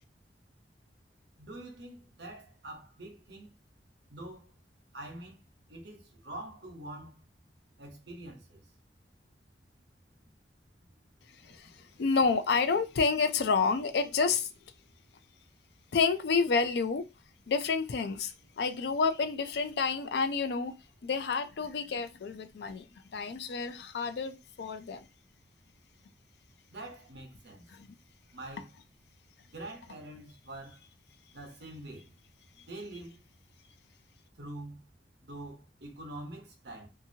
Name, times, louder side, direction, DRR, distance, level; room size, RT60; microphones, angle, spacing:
voice 1, 1.4-3.6 4.1-4.5 4.9-5.4 5.7-7.2 7.8-8.6 26.7-27.7 28.3-28.7 29.5-30.8 31.3-32.1 32.7-33.2 34.4-34.8 35.2-36.9, right 1 dB, 70° right, 0.9 m, -45 dB
voice 2, 12.0-14.5 15.9-17.1 17.5-20.7 21.0-25.1 27.7-27.9, left 4 dB, 65° left, 0.4 m, -29 dB
2.7 x 2.6 x 2.7 m
head